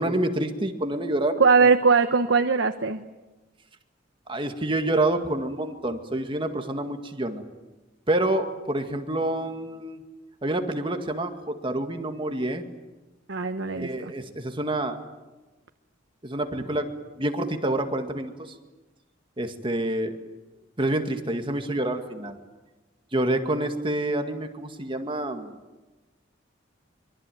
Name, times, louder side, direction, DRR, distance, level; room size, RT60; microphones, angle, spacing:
voice 1, 0.0-1.7 4.3-7.4 8.1-10.0 10.4-12.6 13.7-15.0 16.2-16.9 17.2-18.3 19.4-20.1 20.8-22.4 23.1-25.6, right 1 dB, 25° right, 6 dB, 2.0 m, -27 dB
voice 2, 1.4-3.0 13.3-14.1, right 5 dB, 70° right, 7 dB, 1.1 m, -20 dB
25.0 x 24.0 x 9.3 m, 1.1 s
head